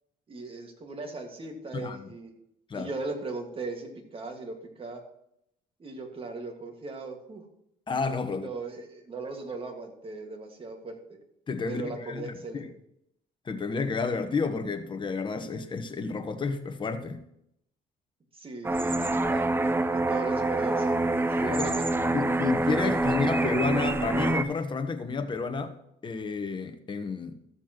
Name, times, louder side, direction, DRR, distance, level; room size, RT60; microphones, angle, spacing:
voice 1, 0.3-2.3 2.7-5.0 5.8-7.4 8.3-11.0 11.7-12.7 18.3-19.5 19.9-21.8, right 3 dB, 35° right, 1.9 m, -38 dB
voice 2, 7.9-8.5 11.5-12.3 13.5-17.2 21.4-21.7 22.1-25.7 26.0-27.3, left 4 dB, 30° left, 1.1 m, -30 dB
sound 1, 18.6-24.4, right 2 dB, 15° right, 0.5 m, -26 dB
13.5 x 7.2 x 3.0 m
cardioid pair, 110°, 17 cm